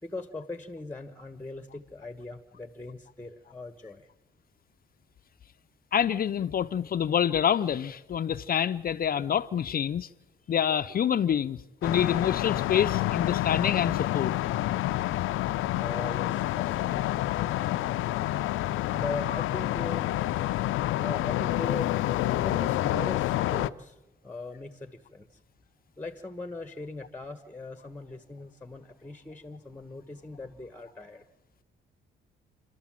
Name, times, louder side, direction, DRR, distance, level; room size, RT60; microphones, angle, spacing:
voice 1, 0.0-4.1 15.8-17.3 18.9-20.1 20.9-21.9 22.3-25.4 26.0-31.3, left 2 dB, 10° left, 1.3 m, -40 dB
voice 2, 5.9-10.1 10.5-14.3 19.3-19.4, left 9 dB, 50° left, 0.6 m, -27 dB
sound 1, 11.8-23.7, left 15 dB, 85° left, 0.6 m, -28 dB
28.5 x 12.5 x 7.5 m
cardioid pair, 90°, 20 cm